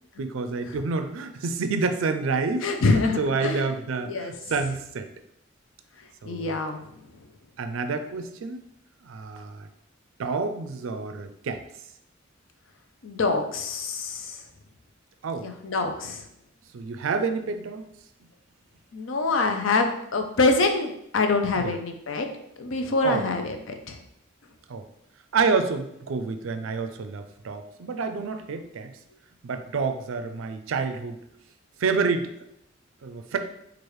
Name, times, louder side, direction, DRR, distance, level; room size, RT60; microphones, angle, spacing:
voice 1, 0.2-2.6 3.2-5.1 6.2-6.6 7.6-8.6 9.0-9.7 10.2-11.6 15.2-15.5 16.7-17.9 21.6-21.8 23.0-23.2 24.7-24.9 25.3-28.9 29.4-31.2 31.8-32.3 33.0-33.4, right 4 dB, 70° right, 8 dB, 0.4 m, -28 dB
voice 2, 2.6-3.7 4.0-4.3 6.3-6.8 13.0-14.4 15.4-16.2 18.9-22.3 22.6-23.6 23.9-24.0, left 3 dB, 65° left, 5 dB, 0.5 m, -25 dB
4.6 x 2.4 x 3.1 m, 0.76 s
head